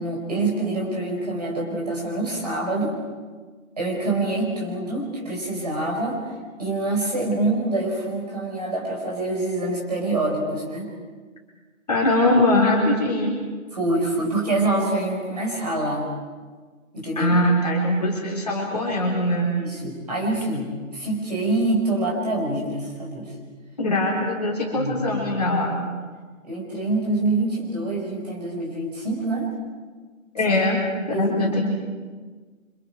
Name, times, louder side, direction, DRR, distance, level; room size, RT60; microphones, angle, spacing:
voice 1, 0.0-2.9 3.8-6.2 6.6-10.9 13.7-16.1 16.9-17.3 19.5-23.3 24.7-25.1 26.4-29.5 30.4-30.5 31.1-31.6, right 2 dB, 30° right, -2 dB, 4.7 m, -26 dB
voice 2, 11.9-13.4 17.2-19.5 23.8-25.8 30.3-30.8 31.1-31.6, left 1 dB, 30° left, -3 dB, 4.1 m, -21 dB
29.5 x 26.0 x 4.8 m, 1.4 s
figure-of-eight pair, 180°, 41 cm